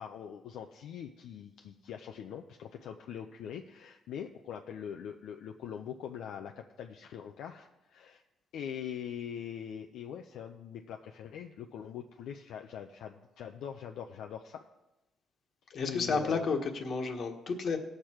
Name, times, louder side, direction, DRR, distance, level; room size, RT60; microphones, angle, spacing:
voice 1, 0.0-8.2 8.5-14.6 15.8-16.5, left 8 dB, 80° left, 4 dB, 0.5 m, -42 dB
voice 2, 15.7-17.8, left 4 dB, 60° left, 5 dB, 1.4 m, -31 dB
17.0 x 6.7 x 4.5 m, 1.0 s
cardioid pair, 90°, 0 cm